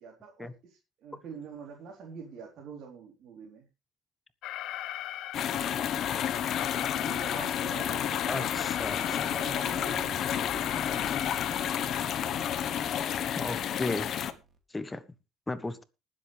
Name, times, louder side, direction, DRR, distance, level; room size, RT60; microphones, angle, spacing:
voice 1, 0.0-3.7 6.9-10.3, right 6 dB, 60° right, -1 dB, 3.9 m, -46 dB
Alarm, 4.4-12.0, left 14 dB, 70° left, 0.8 m, -38 dB
sound 1, 5.3-14.3, left 9 dB, 50° left, 1.2 m, -31 dB
voice 2, 8.3-9.3 13.4-14.1 14.7-15.0 15.5-15.8, left 2 dB, 10° left, 13 dB, 1.2 m, -35 dB
sound 2, 8.6-14.6, right 3 dB, 25° right, 2.7 m, -47 dB
20.5 x 7.7 x 3.5 m, 0.28 s
cardioid pair, 130°, 0 cm